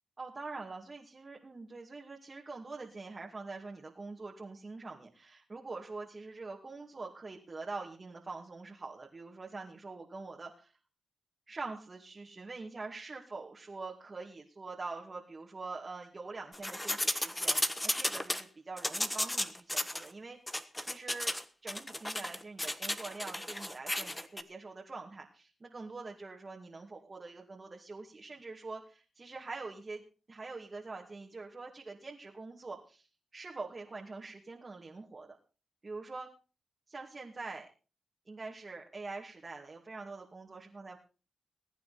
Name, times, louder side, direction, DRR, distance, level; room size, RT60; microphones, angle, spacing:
voice 1, 0.2-10.7 11.5-21.3 21.6-30.0 30.3-33.1 33.3-35.3 35.8-36.3 36.9-37.7 38.3-41.0, right 3 dB, 40° right, -1 dB, 2.5 m, -44 dB
sound 1, 16.5-18.4 18.8-20.0 20.5-21.4 21.7-24.4, left 1 dB, 15° left, 1.4 m, -34 dB
21.5 x 9.2 x 4.3 m, 0.36 s
cardioid pair, 55°, 0 cm